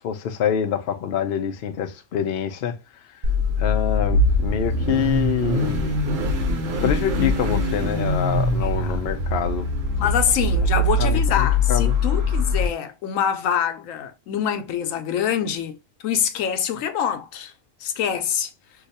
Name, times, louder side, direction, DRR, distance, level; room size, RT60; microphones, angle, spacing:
voice 1, 0.0-2.8 3.6-6.0 6.8-9.7 11.0-12.0, left 8 dB, 60° left, 0.7 m, -26 dB
Car / Idling / Accelerating revving vroom, 3.2-12.7, left 2 dB, 80° right, 1.1 m, -22 dB
voice 2, 8.6-9.0 10.0-15.7 16.0-17.5 17.8-18.5, left 8 dB, 85° left, 1.0 m, -25 dB
2.9 x 2.3 x 4.0 m
omnidirectional pair, 1.3 m